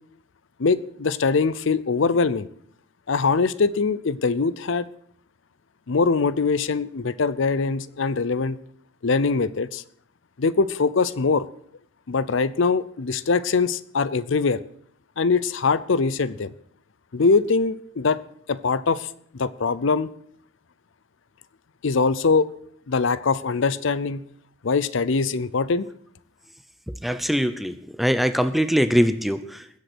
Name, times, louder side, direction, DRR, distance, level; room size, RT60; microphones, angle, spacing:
voice 1, 0.6-2.5 3.1-4.9 5.9-8.6 9.0-9.8 10.4-11.4 12.1-14.6 15.2-16.5 17.1-18.2 18.5-19.1 19.4-20.1 21.8-22.5 22.9-24.2 24.6-25.9, left 4 dB, 65° left, 0.6 m, -22 dB
voice 2, 26.9-29.7, equal, ahead, 0.6 m, -22 dB
20.5 x 8.0 x 6.2 m
head